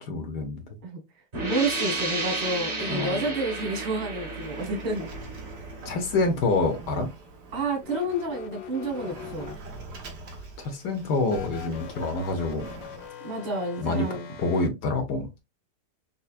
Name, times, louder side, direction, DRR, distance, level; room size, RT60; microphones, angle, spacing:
voice 1, 0.0-0.6 2.9-3.3 5.8-7.1 10.6-12.6 13.8-14.1 14.4-15.4, left 3 dB, 70° left, 1.3 m, -27 dB
sound 1, 1.3-6.8, right 2 dB, 40° right, 1.5 m, -33 dB
voice 2, 1.4-5.1 7.5-9.6 13.2-14.3, right 2 dB, 90° right, 2.2 m, -30 dB
Sliding door, 3.7-13.1, right 2 dB, 65° right, 1.5 m, -44 dB
sound 2, 7.8-10.0 11.2-14.7, left 7 dB, 85° left, 0.6 m, -43 dB
5.4 x 2.1 x 2.4 m
omnidirectional pair, 2.0 m